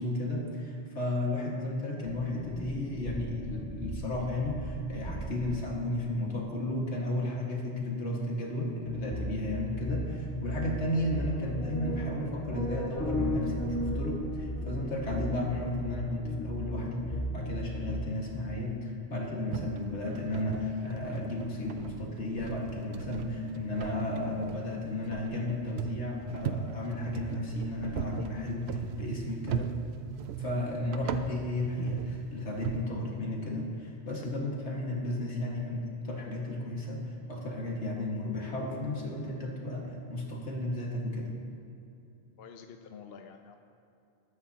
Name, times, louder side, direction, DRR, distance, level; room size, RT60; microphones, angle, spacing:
voice 1, 0.0-29.7 30.4-41.3, left 1 dB, 90° left, -2 dB, 2.1 m, -34 dB
sound 1, 2.1-5.8 8.9-18.0, equal, 15° left, 1.7 m, -36 dB
sound 2, 19.5-32.8, right 8 dB, 75° right, 0.8 m, -38 dB
voice 2, 42.4-43.6, left 6 dB, 65° left, 5 dB, 0.8 m, -48 dB
20.5 x 9.4 x 2.8 m, 2.7 s
omnidirectional pair, 1.1 m